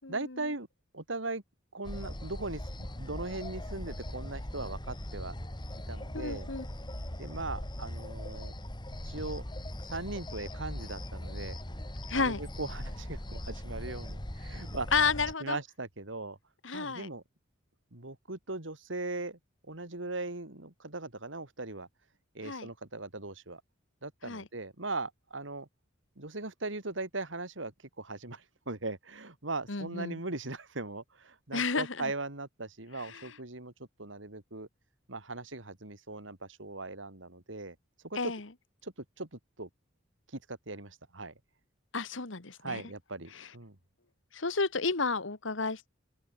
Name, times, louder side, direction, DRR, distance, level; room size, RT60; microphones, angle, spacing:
voice 1, 0.1-0.7 0.9-1.4 1.7-5.3 5.9-6.5 7.2-8.5 9.0-9.4 9.9-11.6 12.1-15.1 15.4-16.4 16.7-17.2 17.9-19.4 19.7-21.9 22.3-23.6 24.0-25.7 26.2-27.7 28.0-33.7 34.0-34.7 35.1-37.7 38.0-38.3 38.8-39.7 40.3-41.3 42.6-43.8, right 2 dB, 75° right, 3.0 m, -39 dB
sound 1, 1.8-15.3, left 1 dB, 25° left, 2.9 m, -40 dB
voice 2, 6.1-6.7 12.1-12.4 14.9-15.6 16.6-17.1 22.4-22.7 24.2-24.4 29.7-30.2 31.5-32.1 33.0-33.2 38.1-38.4 41.9-42.8 43.3-43.5 44.3-45.9, left 4 dB, 80° left, 1.7 m, -31 dB
open air
head